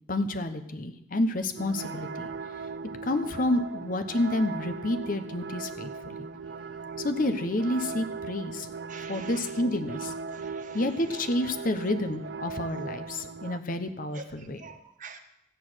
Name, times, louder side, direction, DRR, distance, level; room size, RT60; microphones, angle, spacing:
voice 1, 0.1-2.3 3.0-6.3 7.0-8.7 9.1-10.1 10.7-14.6, left 1 dB, 50° left, 9 dB, 1.1 m, -29 dB
sound 1, 1.6-13.6, right 5 dB, 65° right, 0.5 m, -38 dB
voice 2, 8.9-9.5 10.3-10.8 14.1-15.2, right 4 dB, 45° right, 6 dB, 1.3 m, -46 dB
14.5 x 9.6 x 6.4 m, 0.82 s
head